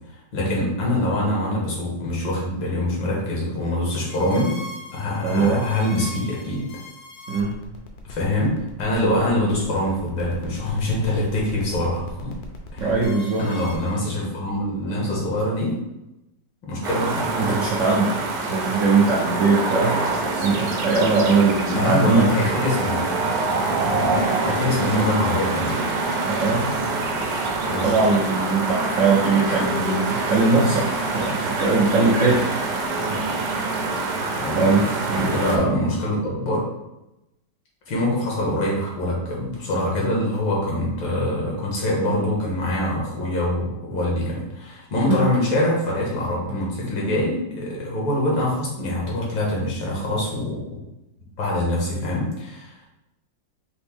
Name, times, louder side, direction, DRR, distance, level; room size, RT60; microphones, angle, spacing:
voice 1, 0.1-4.6 4.9-6.7 8.0-12.3 12.7-12.9 13.4-15.8 16.6-17.3 21.7-23.0 24.4-25.8 27.7-28.1 34.4-34.9 35.1-36.7 37.9-50.8 51.4-52.7, left 1 dB, 80° left, -4 dB, 2.1 m, -24 dB
sound 1, 4.1-13.9, left 2 dB, 65° left, 1.1 m, -40 dB
voice 2, 5.2-5.7 7.3-7.6 12.8-13.5 17.4-18.2 18.5-20.0 20.3-22.3 26.2-26.7 27.8-32.5 34.5-35.8 45.1-45.3, right 3 dB, 80° right, -2 dB, 0.6 m, -21 dB
sound 2, 16.8-35.6, right 3 dB, 65° right, 1.1 m, -25 dB
5.4 x 2.6 x 3.4 m, 0.92 s
omnidirectional pair, 2.1 m